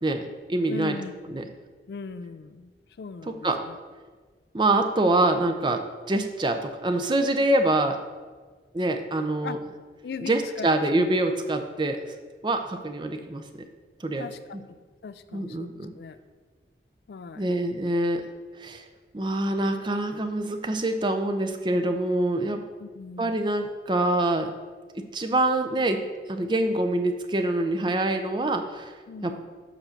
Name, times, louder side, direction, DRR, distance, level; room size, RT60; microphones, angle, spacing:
voice 1, 0.0-1.0 1.3-1.4 3.2-3.6 4.5-8.0 8.7-9.6 10.2-12.0 12.4-13.6 14.0-14.3 15.3-15.9 17.4-18.2 18.6-18.9 19.1-22.6 23.2-24.5 25.0-26.0 26.3-28.9 29.2-29.5, right 2 dB, 25° right, 6 dB, 0.5 m, -25 dB
voice 2, 0.7-1.6 1.9-2.7 3.0-3.8 9.4-9.6 10.0-11.0 14.2-14.4 14.7-15.7 16.0-16.2 17.1-17.5 22.8-23.3 29.1-29.4, left 5 dB, 65° left, 13 dB, 0.3 m, -39 dB
5.7 x 4.9 x 6.4 m, 1.5 s
head